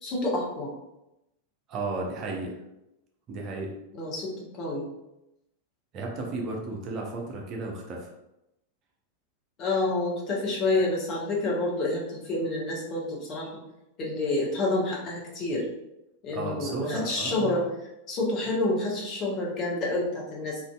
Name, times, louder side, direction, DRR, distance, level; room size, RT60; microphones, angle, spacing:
voice 1, 0.0-0.7 3.9-4.9 9.6-13.5 14.0-15.6 16.2-17.6 18.1-20.6, left 2 dB, 35° left, -4 dB, 0.8 m, -28 dB
voice 2, 1.7-2.6 3.3-3.7 5.9-8.1 16.3-17.6, right 3 dB, 35° right, 0 dB, 0.6 m, -33 dB
2.6 x 2.4 x 2.2 m, 0.89 s
figure-of-eight pair, 90°, 0 cm